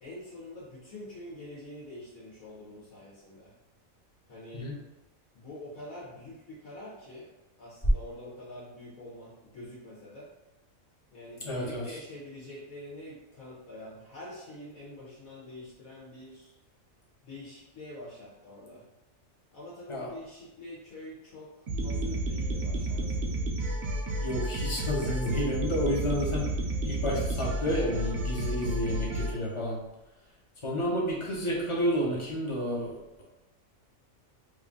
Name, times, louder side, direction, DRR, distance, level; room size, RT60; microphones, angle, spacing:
voice 1, 0.0-3.5 4.3-4.7 5.3-7.3 7.6-10.3 11.1-16.5 17.2-18.8 19.5-23.4 30.7-31.0, left 1 dB, 80° left, -6 dB, 1.4 m, -46 dB
voice 2, 11.4-12.0 19.9-20.1 24.2-26.4 26.8-29.8 30.6-33.2, equal, 30° left, -3 dB, 0.7 m, -30 dB
sound 1, 21.7-29.3, right 1 dB, 60° right, 0.8 m, -31 dB
3.1 x 2.6 x 3.6 m, 0.99 s
omnidirectional pair, 1.4 m